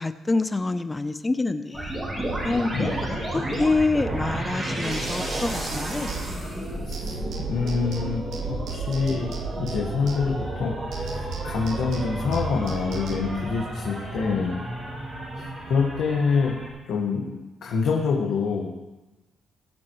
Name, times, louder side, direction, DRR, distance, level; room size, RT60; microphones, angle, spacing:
voice 1, 0.0-2.1 2.4-2.9 3.3-6.1, left 3 dB, 20° left, 10 dB, 0.7 m, -26 dB
sound 1, 1.7-16.7, right 1 dB, 25° right, 4.7 m, -32 dB
sound 2, 4.9-6.7 6.9-10.6 10.9-13.3, right 7 dB, 75° right, 1.1 m, -37 dB
voice 2, 7.5-14.6 15.7-16.5 16.8-17.3 17.6-18.7, left 5 dB, 75° left, -2 dB, 1.6 m, -26 dB
20.5 x 7.6 x 3.2 m, 1.1 s
cardioid pair, 90°, 0 cm